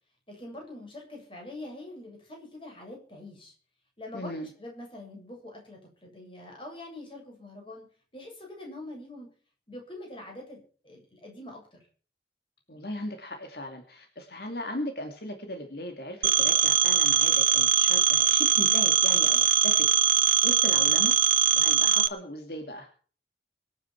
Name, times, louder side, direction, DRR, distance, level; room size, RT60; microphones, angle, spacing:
voice 1, 0.3-3.5 4.0-7.9 8.1-9.3 9.7-11.8 21.8-21.9, left 1 dB, 30° left, 1 dB, 7.7 m, -44 dB
voice 2, 4.1-4.5 12.7-19.9 20.4-21.1 21.5-22.9, left 1 dB, 60° left, 4 dB, 2.5 m, -37 dB
Telephone, 16.2-22.1, right 9 dB, 50° right, 1.0 m, -22 dB
25.0 x 9.5 x 4.5 m, 0.42 s
head